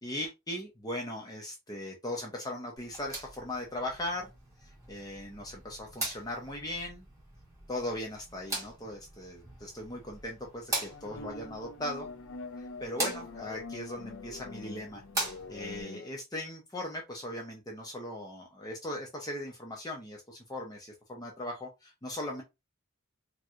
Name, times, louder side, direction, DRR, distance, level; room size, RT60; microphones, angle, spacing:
voice 1, 0.0-4.3 4.6-7.1 7.7-12.1 12.6-15.0 15.5-22.4, left 1 dB, 15° left, 0 dB, 0.6 m, -39 dB
sound 1, 2.8-15.8, right 2 dB, 15° right, 1.3 m, -41 dB
sound 2, 10.7-16.1, left 3 dB, 60° left, 0.4 m, -44 dB
4.4 x 2.3 x 2.4 m, 0.23 s
head